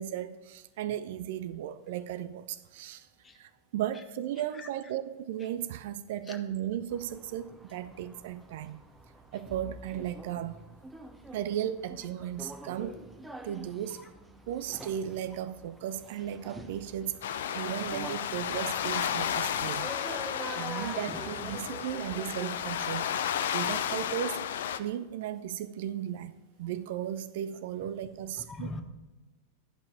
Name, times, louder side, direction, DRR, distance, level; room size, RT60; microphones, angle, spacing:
voice 1, 0.0-3.1 3.3-8.8 9.3-10.6 11.3-13.0 13.4-14.1 14.5-19.9 20.6-23.2 23.5-26.3 26.6-28.7, right 11 dB, 55° right, 0.4 m, -36 dB
sound 1, 6.9-23.0, right 1 dB, 5° right, 0.9 m, -46 dB
sound 2, 17.2-24.8, left 9 dB, 60° left, 0.5 m, -33 dB
voice 2, 19.5-20.1 21.6-21.7 28.4-28.8, left 3 dB, 20° left, 1.0 m, -43 dB
11.0 x 5.8 x 4.5 m
figure-of-eight pair, 90°, 0 cm